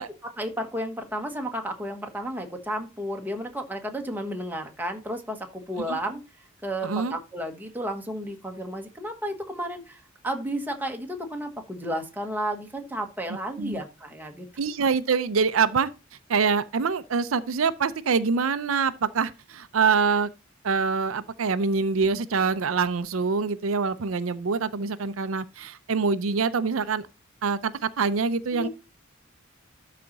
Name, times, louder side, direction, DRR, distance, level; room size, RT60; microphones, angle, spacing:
voice 1, 0.2-6.2 6.6-14.5 28.5-28.7, equal, 10° right, 1.3 m, -32 dB
voice 2, 6.8-7.2 13.6-13.8 14.6-15.9 16.3-20.3 20.6-27.0 27.4-28.7, right 5 dB, 85° right, 0.6 m, -25 dB
12.5 x 4.2 x 4.0 m
head